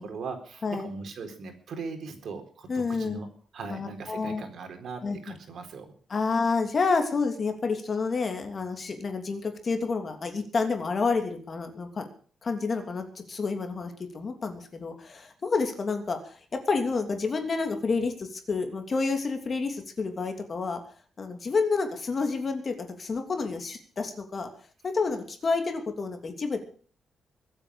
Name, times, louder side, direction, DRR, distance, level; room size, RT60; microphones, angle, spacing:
voice 1, 0.0-3.3 3.5-5.9, right 4 dB, 60° right, 6 dB, 4.3 m, -39 dB
voice 2, 2.7-3.2 3.7-4.4 5.0-5.2 6.1-12.1 12.4-16.4 16.7-20.8 21.2-24.5 24.8-26.6, left 4 dB, 35° left, 5 dB, 3.0 m, -29 dB
23.0 x 8.8 x 6.5 m, 0.43 s
wide cardioid pair, 155°, 0 cm